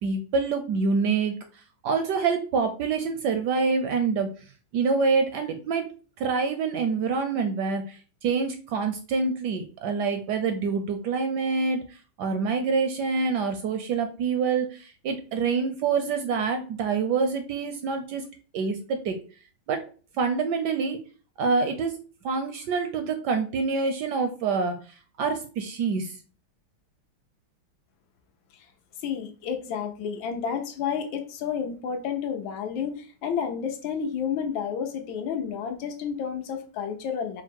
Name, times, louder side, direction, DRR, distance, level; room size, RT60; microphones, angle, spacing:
voice 1, 0.0-1.4 1.8-4.3 4.7-5.9 6.2-11.8 12.2-18.3 18.5-19.2 19.7-19.8 20.2-21.0 21.4-21.9 22.2-24.8 25.2-26.2, right 5 dB, 75° right, 6 dB, 1.0 m, -26 dB
voice 2, 29.0-37.4, left 7 dB, 80° left, 5 dB, 1.5 m, -30 dB
4.4 x 2.0 x 4.4 m, 0.37 s
omnidirectional pair, 2.2 m